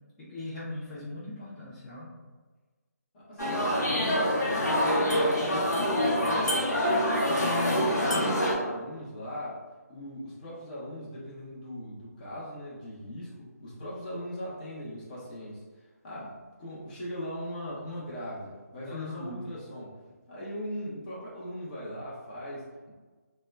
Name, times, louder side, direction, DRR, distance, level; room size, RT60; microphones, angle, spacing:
voice 1, 0.2-2.1 18.9-19.5, left 2 dB, 5° left, -11 dB, 0.4 m, -40 dB
voice 2, 3.1-6.9 7.2-9.6 9.9-15.6 16.0-20.0 20.3-22.9, equal, 30° left, -7 dB, 0.7 m, -39 dB
sound 1, 3.4-8.5, equal, 85° left, 0.7 m, -26 dB
2.8 x 2.1 x 2.3 m, 1.3 s
figure-of-eight pair, 160°, 9 cm